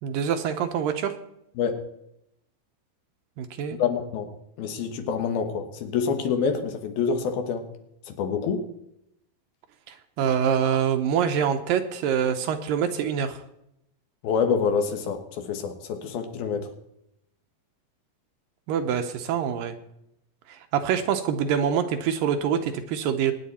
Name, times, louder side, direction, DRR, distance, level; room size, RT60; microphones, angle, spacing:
voice 1, 0.0-1.2 3.4-3.8 9.9-13.4 18.7-19.8 20.5-23.3, right 8 dB, 75° right, 8 dB, 2.4 m, -25 dB
voice 2, 3.8-4.3 4.6-7.6 8.1-8.6 14.2-16.7, left 6 dB, 75° left, 6 dB, 3.2 m, -26 dB
23.0 x 9.8 x 4.3 m, 0.80 s
omnidirectional pair, 4.4 m